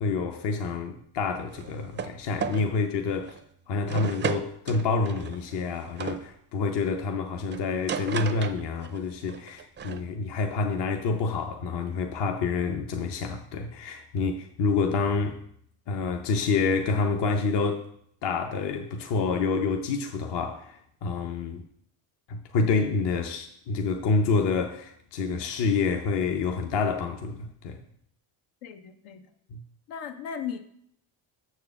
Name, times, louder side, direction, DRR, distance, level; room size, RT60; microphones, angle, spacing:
voice 1, 0.0-3.4 3.7-15.4 15.9-17.9 18.2-21.6 22.3-27.8 29.5-29.6, left 4 dB, 55° left, 0.8 m, -28 dB
sound 1, 1.5-2.1 2.4-2.7 3.2-3.4 3.9-6.2 7.5-9.0 9.3-10.0, right 7 dB, 25° right, 0.4 m, -34 dB
voice 2, 28.6-29.3 29.9-30.6, left 7 dB, 85° left, 1.0 m, -36 dB
6.8 x 4.6 x 6.9 m
cardioid pair, 115°, 49 cm